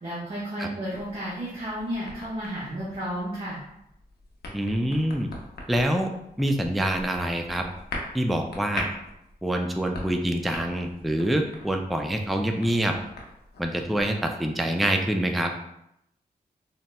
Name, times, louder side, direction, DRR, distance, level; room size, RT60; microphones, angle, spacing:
voice 1, 0.0-3.6, equal, 35° right, -7 dB, 0.8 m, -32 dB
sound 1, 0.9-14.2, left 2 dB, 80° left, 0.6 m, -42 dB
voice 2, 4.5-5.3 5.7-6.1 6.4-7.6 8.1-8.9 9.4-12.9 13.6-15.5, right 1 dB, ahead, 4 dB, 0.3 m, -25 dB
4.0 x 2.0 x 2.2 m, 0.80 s
cardioid pair, 65°, 17 cm